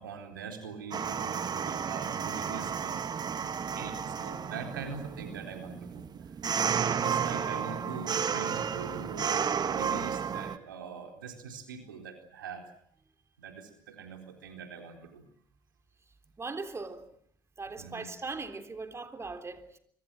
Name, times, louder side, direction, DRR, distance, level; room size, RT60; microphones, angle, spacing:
voice 1, 0.0-3.0 3.7-6.1 6.6-12.6 13.4-15.2 17.8-18.1, right 5 dB, 90° right, 4.0 m, -43 dB
sound 1, 0.9-10.6, right 7 dB, 40° right, 2.0 m, -32 dB
voice 2, 16.4-17.1 17.6-19.8, right 3 dB, 25° right, 3.6 m, -39 dB
25.0 x 24.5 x 7.7 m
hypercardioid pair, 60°, 11 cm